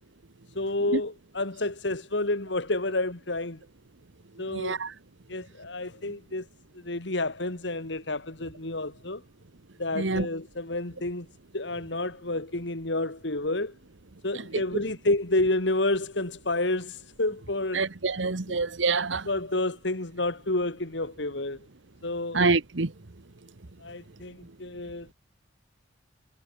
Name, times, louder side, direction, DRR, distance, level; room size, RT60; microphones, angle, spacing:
voice 1, 0.5-3.6 4.4-4.8 5.3-6.5 6.7-9.2 9.8-11.3 11.5-13.7 14.2-17.8 19.3-21.6 22.0-22.4 23.8-25.1, left 2 dB, 65° left, 2.4 m, -29 dB
voice 2, 4.5-4.9 10.0-10.3 17.7-19.3 22.3-22.9, right 3 dB, 75° right, 1.2 m, -26 dB
head